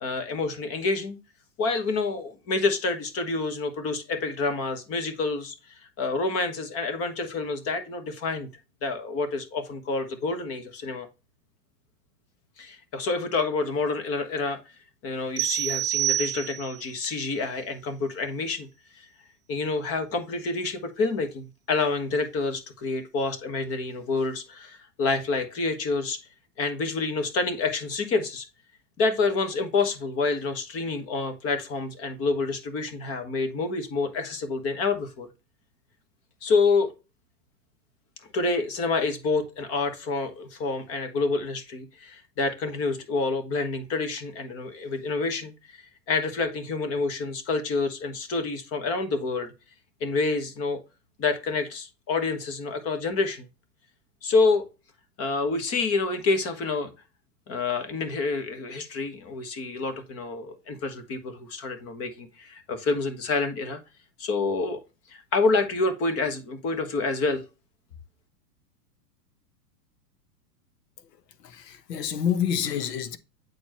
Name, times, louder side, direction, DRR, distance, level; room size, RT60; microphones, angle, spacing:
voice 1, 0.0-1.2 1.6-5.6 6.0-8.5 8.8-11.1 12.6-14.6 15.0-18.7 19.5-26.2 26.6-28.5 29.0-35.3 36.4-36.9 38.3-49.5 50.0-50.8 51.2-53.5 54.2-54.6 55.2-56.9 57.5-63.8 64.2-64.8 65.1-67.4, left 3 dB, 30° left, 1.4 m, -28 dB
sound 1, 15.4-16.9, right 13 dB, 15° right, 0.5 m, -27 dB
voice 2, 71.4-73.2, left 8 dB, 80° left, 1.1 m, -28 dB
8.1 x 4.3 x 3.0 m
hypercardioid pair, 135°, 48 cm